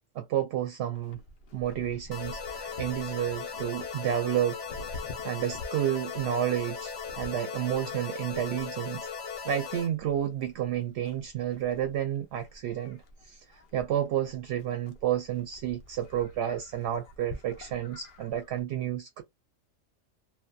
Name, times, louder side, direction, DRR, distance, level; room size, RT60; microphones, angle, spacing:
voice 1, 0.1-1.2 1.5-5.0 5.2-9.1 9.4-13.4 13.7-19.2, right 10 dB, 70° right, 0.8 m, -31 dB
Livestock farm animals working animals, 0.9-18.6, left 2 dB, 55° left, 0.7 m, -49 dB
sound 1, 2.1-9.9, left 6 dB, 75° left, 1.1 m, -38 dB
2.7 x 2.1 x 2.3 m
omnidirectional pair, 1.2 m